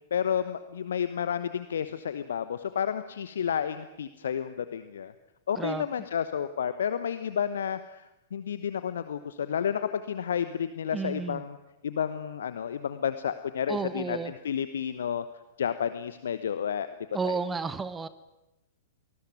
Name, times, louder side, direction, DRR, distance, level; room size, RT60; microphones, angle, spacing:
voice 1, 0.1-5.1 5.5-11.6 11.8-15.2 15.6-16.9 17.2-17.4, left 8 dB, 60° left, 12 dB, 1.1 m, -31 dB
voice 2, 10.9-11.4 13.7-14.3 17.1-18.1, right 5 dB, 10° right, 15 dB, 1.1 m, -32 dB
26.0 x 20.0 x 9.2 m, 0.94 s
figure-of-eight pair, 105°, 0 cm